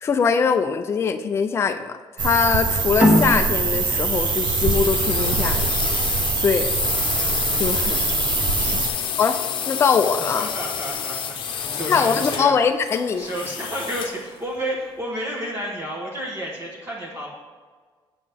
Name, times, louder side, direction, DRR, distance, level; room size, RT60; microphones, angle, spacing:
voice 1, 0.0-5.7 6.3-6.7 7.6-8.0 8.7-8.8 9.2-9.4 9.7-10.5 11.9-13.2, left 6 dB, 30° left, 7 dB, 0.4 m, -22 dB
sound 1, 2.2-8.9, right 5 dB, 55° right, 0.8 m, -23 dB
sound 2, 2.7-14.2, left 7 dB, 60° left, 0.8 m, -29 dB
sound 3, 3.0-6.2, left 1 dB, 10° right, 1.3 m, -22 dB
voice 2, 8.5-9.2 10.4-12.5 13.2-17.3, equal, 30° right, -4 dB, 1.1 m, -31 dB
7.7 x 7.3 x 3.4 m, 1.5 s
cardioid pair, 165°, 9 cm